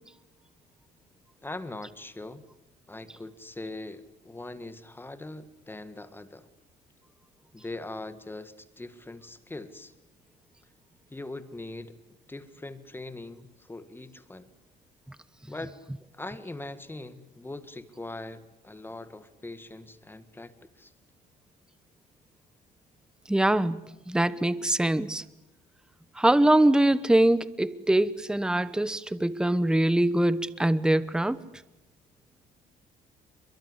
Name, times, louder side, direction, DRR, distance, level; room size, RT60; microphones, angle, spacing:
voice 1, 1.4-2.4 2.9-6.5 7.5-9.9 11.1-12.0 12.3-14.5 15.5-15.8 16.1-20.9, left 2 dB, 10° left, 1.8 m, -41 dB
voice 2, 23.3-23.8 24.1-25.2 26.2-31.4, right 1 dB, 5° right, 1.0 m, -23 dB
29.0 x 23.0 x 8.1 m
cardioid pair, 110°, 17 cm